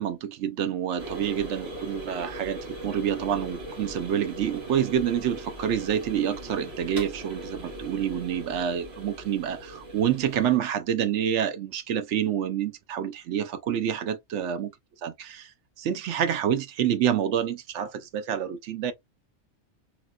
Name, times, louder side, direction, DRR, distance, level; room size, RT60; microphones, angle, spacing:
voice 1, 0.0-14.7 15.0-18.9, right 9 dB, 65° right, 0.8 m, -28 dB
sound 1, 1.0-10.6, right 1 dB, 50° right, 1.8 m, -40 dB
3.1 x 2.8 x 2.3 m
omnidirectional pair, 1.4 m